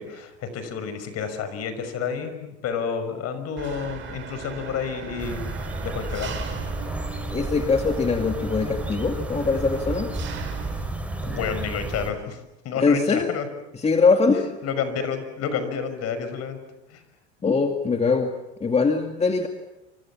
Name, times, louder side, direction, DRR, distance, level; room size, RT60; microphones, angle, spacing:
voice 1, 0.0-5.5 5.8-6.4 11.2-13.5 14.3-16.6 16.9-17.0, left 6 dB, 50° left, 10 dB, 6.0 m, -30 dB
Engine, 3.6-11.0, right 7 dB, 35° right, 7.3 m, -38 dB
sound 1, 5.2-12.1, right 1 dB, 5° right, 4.5 m, -32 dB
voice 2, 7.3-10.1 12.8-13.3 13.8-14.5 17.4-18.3 18.6-19.5, left 4 dB, 20° left, 5 dB, 2.3 m, -22 dB
28.5 x 26.0 x 7.4 m, 0.96 s
supercardioid pair, 100°, 33 cm